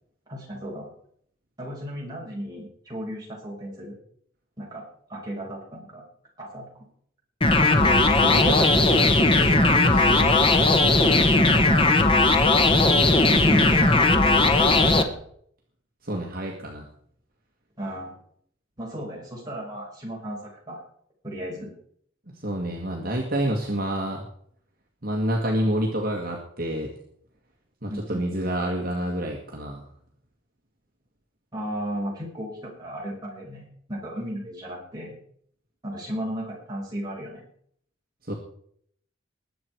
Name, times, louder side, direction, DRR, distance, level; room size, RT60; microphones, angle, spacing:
voice 1, 0.3-0.9 1.6-4.0 4.6-4.8 5.1-6.0 6.4-6.9 10.1-10.7 11.3-11.9 13.2-15.2 17.8-18.2 18.8-20.8 21.2-21.7 27.9-28.5 31.5-35.2 35.8-37.4, equal, 20° right, -3 dB, 5.5 m, -35 dB
sound 1, 7.4-15.0, left 2 dB, 25° left, 1.1 m, -18 dB
voice 2, 7.5-10.3 16.0-16.9 22.3-24.3 25.0-26.9 27.8-29.8 38.2-38.3, right 1 dB, 45° right, -1 dB, 1.9 m, -28 dB
21.0 x 7.9 x 4.6 m, 0.64 s
head